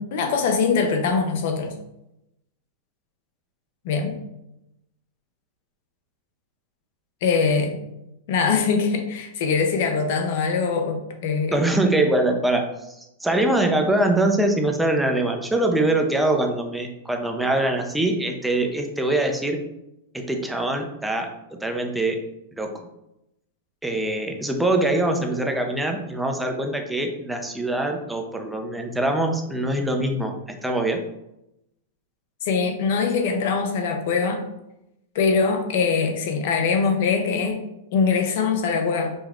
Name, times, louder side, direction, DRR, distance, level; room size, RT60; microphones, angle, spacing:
voice 1, 0.0-1.7 3.8-4.2 7.2-7.7 8.3-11.5 32.4-34.4 35.1-37.6 37.9-39.1, left 5 dB, 60° left, 5 dB, 0.8 m, -22 dB
voice 2, 11.5-19.6 20.1-21.3 21.6-22.2 22.5-22.7 23.8-31.0, right 1 dB, 5° right, 3 dB, 0.6 m, -23 dB
5.2 x 2.2 x 3.7 m, 0.87 s
hypercardioid pair, 140°, 0 cm